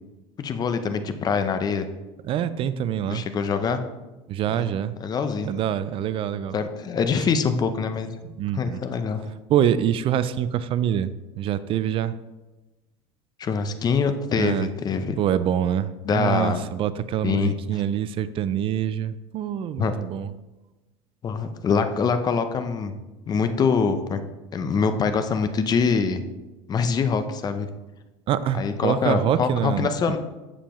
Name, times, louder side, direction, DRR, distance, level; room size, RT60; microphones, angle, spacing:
voice 1, 0.4-1.9 3.1-3.8 4.5-4.6 5.0-5.5 6.5-8.1 8.5-9.2 13.4-15.2 16.0-16.6 17.2-17.8 19.8-19.9 21.2-22.9 23.3-24.2 24.5-26.2 26.7-27.7 28.6-30.2, left 5 dB, 30° left, 9 dB, 0.7 m, -24 dB
voice 2, 2.2-3.2 4.3-5.0 5.4-6.6 8.2-8.8 9.5-12.1 14.4-14.7 15.2-20.3 28.3-30.1, right 10 dB, 45° right, 14 dB, 0.4 m, -25 dB
7.3 x 6.7 x 3.1 m, 1.1 s
supercardioid pair, 115°, 13 cm